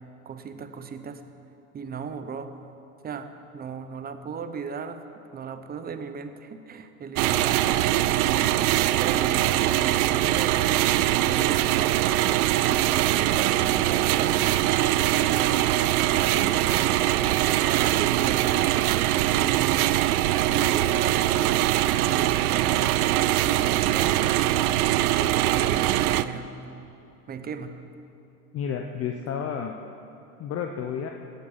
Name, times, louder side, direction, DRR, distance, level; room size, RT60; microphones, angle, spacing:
voice 1, 0.3-1.2 1.7-2.6 3.0-5.0 5.3-12.2 12.7-18.6 19.3-19.9 20.4-23.0 23.4-24.8 25.2-26.5 27.3-27.8, right 6 dB, 20° right, 9 dB, 0.8 m, -36 dB
sound 1, 7.2-26.2, right 14 dB, 70° right, 0.6 m, -22 dB
voice 2, 28.5-29.7 30.4-31.1, left 7 dB, 30° left, 4 dB, 0.8 m, -31 dB
17.0 x 8.0 x 5.6 m, 2.8 s
hypercardioid pair, 105°, 46 cm